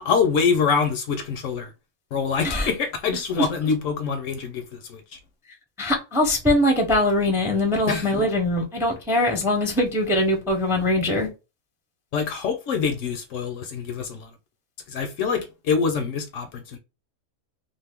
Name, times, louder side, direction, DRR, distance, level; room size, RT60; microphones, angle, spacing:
voice 1, 0.0-1.7 2.1-5.2 7.9-8.1 12.1-14.3 14.9-16.8, left 5 dB, 65° left, 0.9 m, -25 dB
voice 2, 5.8-11.3, left 1 dB, 5° right, 0.5 m, -22 dB
2.6 x 2.5 x 3.4 m
omnidirectional pair, 1.5 m